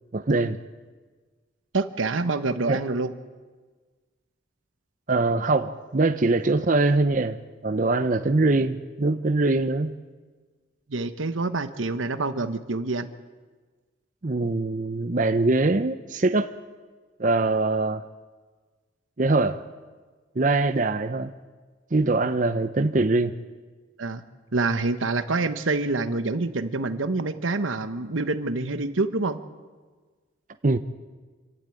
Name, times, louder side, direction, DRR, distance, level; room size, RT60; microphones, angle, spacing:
voice 1, 0.1-0.6 2.7-2.8 5.1-7.4 7.6-9.9 14.2-16.5 17.2-18.0 19.2-19.6 20.4-21.3 21.9-23.3 30.6-30.8, right 2 dB, 40° right, 8 dB, 0.6 m, -23 dB
voice 2, 1.7-3.1 10.9-13.1 24.0-24.2 24.5-29.4, right 3 dB, 85° right, 11 dB, 1.1 m, -26 dB
26.0 x 12.0 x 9.0 m, 1.4 s
head